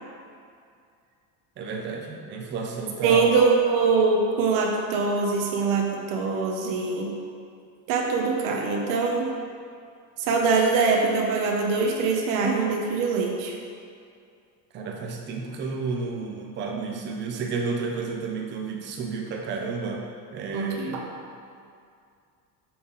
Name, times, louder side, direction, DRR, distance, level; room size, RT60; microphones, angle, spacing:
voice 1, 1.6-3.3 14.7-20.0 20.3-21.0, right 4 dB, 30° right, 0 dB, 0.6 m, -31 dB
voice 2, 3.0-7.1 7.9-9.3 10.2-13.6 20.5-21.0, right 4 dB, 55° right, 0 dB, 0.9 m, -23 dB
6.0 x 5.5 x 3.9 m, 2.3 s
cardioid pair, 175°, 39 cm